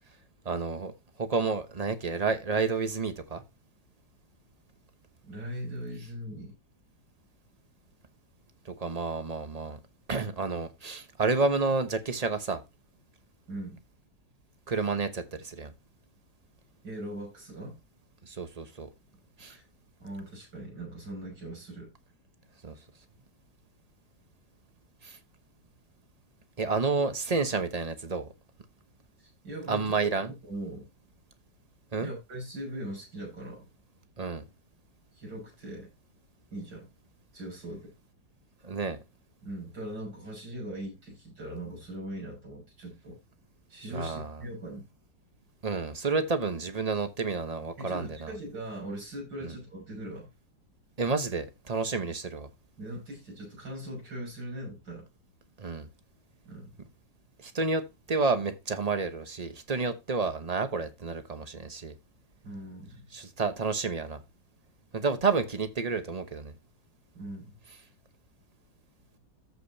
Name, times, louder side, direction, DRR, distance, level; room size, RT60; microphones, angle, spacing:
voice 1, 0.4-0.9 1.2-3.4 8.6-9.8 10.1-12.6 14.7-15.7 18.2-18.9 19.4-19.6 22.6-22.8 25.0-25.2 26.6-28.3 29.7-30.3 31.9-32.1 34.2-34.4 38.6-39.0 43.9-44.4 45.6-48.3 49.4-49.5 51.0-52.5 55.6-55.9 57.4-61.9 63.1-64.2 64.9-66.5, right 4 dB, 30° right, 0.9 m, -30 dB
voice 2, 5.2-6.5 13.5-13.8 16.8-17.8 19.5-19.6 20.0-21.9 29.2-29.9 30.4-30.8 32.0-33.7 35.1-35.9 36.5-36.9 37.3-37.9 39.4-43.2 43.7-44.8 47.8-50.3 52.0-52.1 52.8-55.0 56.4-56.7 62.4-63.1 67.1-67.6, right 1 dB, 75° right, 6.8 m, -40 dB
14.5 x 5.1 x 2.8 m
omnidirectional pair, 1.9 m